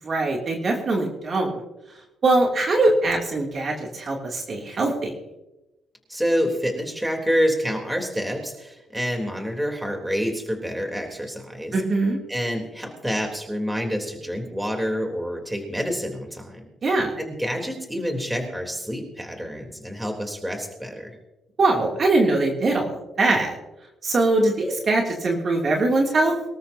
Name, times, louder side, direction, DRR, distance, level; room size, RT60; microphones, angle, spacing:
voice 1, 0.0-1.6 2.2-5.1 11.7-12.2 16.8-17.1 21.6-23.5 24.0-26.3, right 2 dB, 45° right, 0 dB, 2.9 m, -22 dB
voice 2, 6.1-11.8 12.3-16.6 16.9-21.2, equal, 5° right, 2 dB, 3.6 m, -27 dB
24.0 x 13.5 x 2.9 m, 0.99 s
cardioid pair, 90°, 0 cm